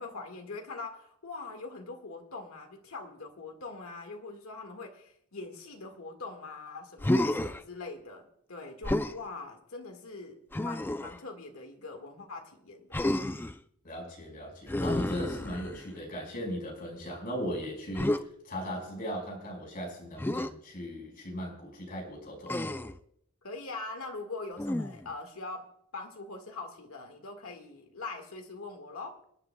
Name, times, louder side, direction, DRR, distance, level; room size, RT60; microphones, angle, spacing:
voice 1, 0.0-13.0 23.4-29.2, left 3 dB, 80° left, 1.7 m, -42 dB
Human voice, 7.0-7.6 8.8-9.2 10.5-11.2 12.9-13.6 14.7-15.9 18.0-18.2 20.2-20.5 22.5-23.0 24.6-25.1, left 1 dB, 10° left, 0.4 m, -30 dB
voice 2, 13.8-22.8, equal, 45° left, 5.0 m, -38 dB
27.5 x 9.8 x 2.3 m
head